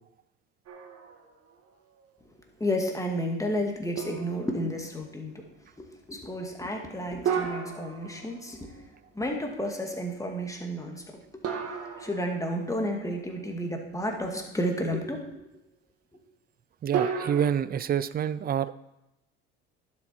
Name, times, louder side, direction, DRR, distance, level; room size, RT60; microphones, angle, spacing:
sound 1, 0.7-1.5 2.0-2.1 4.0-4.9 7.3-8.8 11.4-12.8 16.9-17.5, right 7 dB, 50° right, 1.7 m, -33 dB
voice 1, 2.6-5.4 6.1-8.7 9.1-11.0 11.3-11.4 11.7-15.4, equal, 10° left, 1 dB, 2.2 m, -31 dB
voice 2, 16.8-18.7, right 9 dB, 30° right, 15 dB, 0.5 m, -27 dB
11.5 x 7.0 x 4.5 m, 0.90 s
hypercardioid pair, 80°, 32 cm